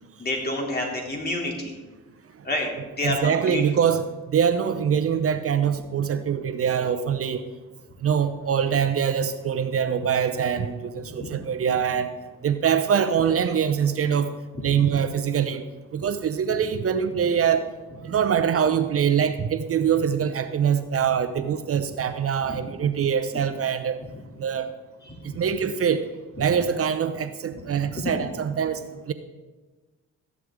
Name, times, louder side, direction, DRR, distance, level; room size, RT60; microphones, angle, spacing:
voice 1, 0.2-1.7 2.4-2.7 3.0-3.6 11.2-11.3 14.6-14.7 16.5-16.6 18.1-18.2 22.4-22.6 24.0-24.1 25.0-25.4 26.4-26.5 27.5-27.6 27.9-28.1, left 1 dB, 30° left, 0 dB, 3.2 m, -29 dB
voice 2, 3.0-7.4 8.0-12.1 12.4-14.3 14.6-15.6 15.9-17.7 18.0-24.0 24.4-24.7 25.2-26.1 26.4-28.8 29.1-29.2, right 8 dB, 50° right, 10 dB, 0.8 m, -24 dB
14.0 x 11.0 x 3.8 m, 1.2 s
cardioid pair, 90°, 30 cm